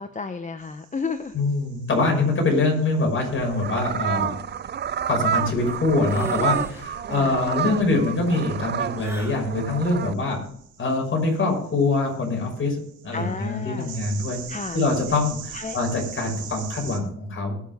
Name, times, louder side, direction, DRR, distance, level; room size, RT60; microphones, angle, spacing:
voice 1, 0.0-1.3 7.1-7.4 13.1-14.0 14.5-14.8 15.5-15.8, left 4 dB, 25° left, 8 dB, 0.9 m, -32 dB
sound 1, 0.6-17.0, right 7 dB, 75° right, 4.5 m, -44 dB
voice 2, 1.3-4.3 5.1-10.4 10.8-14.4 14.7-17.6, left 3 dB, 40° left, 1 dB, 5.9 m, -24 dB
sound 2, 3.2-10.1, right 8 dB, 35° right, 0.5 m, -29 dB
sound 3, 6.0-6.9 7.2-7.7 8.9-9.4, right 1 dB, 10° right, 2.6 m, -37 dB
20.5 x 6.9 x 3.6 m, 0.68 s
cardioid pair, 90°, 30 cm